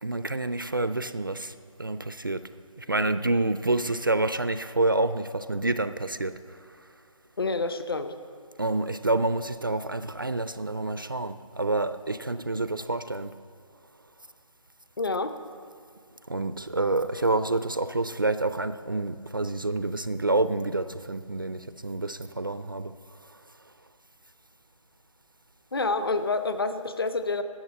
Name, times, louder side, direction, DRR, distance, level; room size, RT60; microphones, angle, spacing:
voice 1, 0.0-2.5 2.8-6.6 8.6-13.3 16.3-22.9 23.3-23.4, right 2 dB, 40° right, 12 dB, 0.4 m, -28 dB
voice 2, 7.4-8.1 15.0-15.3 25.7-27.4, left 3 dB, 45° left, 10 dB, 0.8 m, -28 dB
13.5 x 8.9 x 7.4 m, 2.1 s
hypercardioid pair, 175°, 17 cm